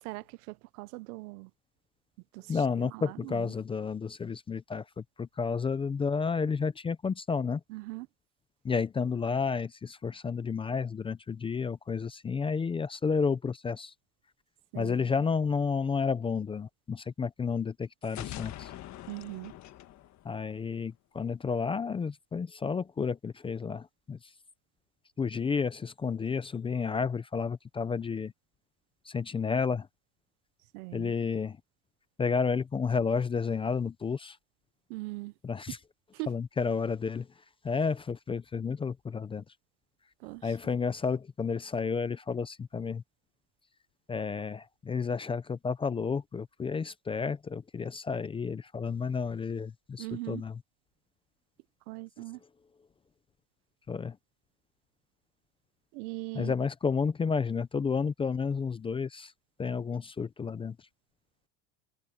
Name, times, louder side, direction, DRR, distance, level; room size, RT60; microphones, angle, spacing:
voice 1, 0.0-1.5 2.3-3.5 7.7-8.1 14.7-15.2 19.1-19.5 30.7-31.1 34.9-35.3 36.1-36.3 40.2-40.6 50.0-50.4 51.9-52.4 55.9-56.7, right 23 dB, 85° right, 0.8 m, -40 dB
voice 2, 2.5-7.6 8.6-13.9 14.8-18.7 20.2-24.2 25.2-28.3 29.1-29.9 30.9-31.6 32.2-34.4 35.4-35.8 36.3-37.3 37.6-39.4 40.4-43.0 44.1-50.5 53.9-54.2 56.3-59.3 59.6-60.8, left 5 dB, 15° left, 0.4 m, -31 dB
sound 1, 18.0-20.9, left 13 dB, 40° left, 1.6 m, -44 dB
cardioid pair, 145°, 44 cm